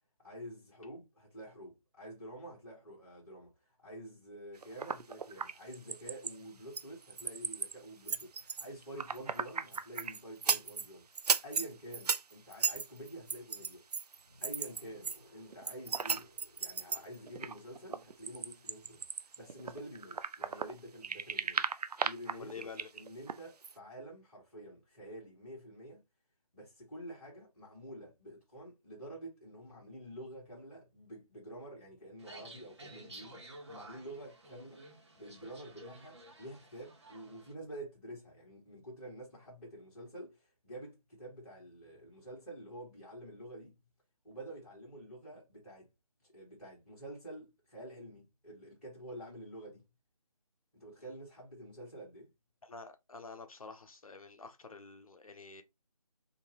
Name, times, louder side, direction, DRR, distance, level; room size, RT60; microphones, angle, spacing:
voice 1, 0.2-3.5 3.8-13.8 14.4-16.3 16.6-21.7 22.0-26.0 26.5-34.8 35.2-43.8 44.2-45.9 46.3-49.8 50.7-52.3, right 1 dB, 5° right, 2.0 m, -48 dB
sound 1, 4.6-6.3 6.7-7.8 8.1-10.9 11.2-15.2 15.5-20.7 21.0-23.4 23.6-23.7, right 5 dB, 85° right, 0.5 m, -35 dB
sound 2, 14.1-19.2, left 1 dB, 30° left, 1.9 m, -63 dB
voice 2, 22.3-22.9 52.6-55.6, left 4 dB, 65° left, 0.9 m, -48 dB
sound 3, 32.2-37.5, right 1 dB, 45° right, 1.4 m, -53 dB
3.6 x 2.9 x 3.0 m
figure-of-eight pair, 170°, 20 cm